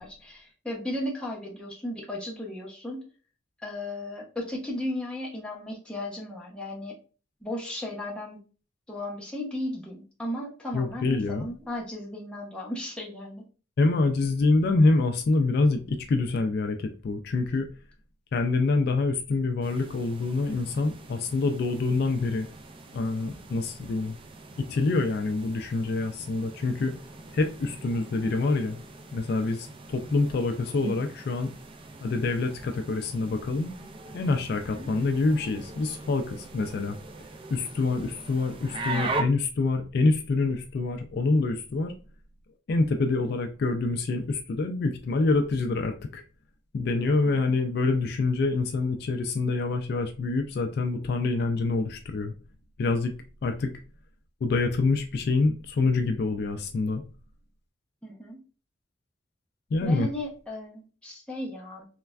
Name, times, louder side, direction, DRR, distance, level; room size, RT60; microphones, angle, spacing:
voice 1, 0.0-3.1 3.6-7.0 7.4-8.4 8.9-13.4 34.6-34.9 47.3-47.6 58.0-58.4 59.8-61.9, left 1 dB, 5° left, 0.7 m, -35 dB
voice 2, 10.7-11.5 13.8-17.7 18.3-22.5 22.9-24.2 24.6-26.9 27.3-28.8 29.1-31.5 32.0-33.7 34.1-37.0 37.5-41.9 42.7-46.2 46.7-52.3 52.8-53.1 53.4-53.7 54.4-57.0 59.7-60.1, left 3 dB, 55° left, 0.3 m, -26 dB
sound 1, 19.6-39.2, right 3 dB, 25° right, 0.3 m, -40 dB
3.2 x 2.2 x 2.3 m
head